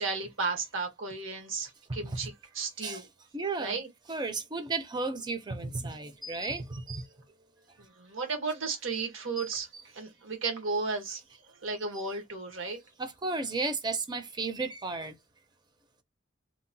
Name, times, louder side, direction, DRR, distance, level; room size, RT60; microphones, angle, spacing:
voice 1, 0.0-3.1 3.6-3.9 7.8-9.7 9.9-11.2 11.6-12.8, right 4 dB, 80° right, 1.0 m, -34 dB
voice 2, 3.3-3.8 4.1-7.2 9.4-9.5 12.0-12.1 13.0-15.2, right 3 dB, 20° right, 0.5 m, -34 dB
2.8 x 2.1 x 2.6 m
head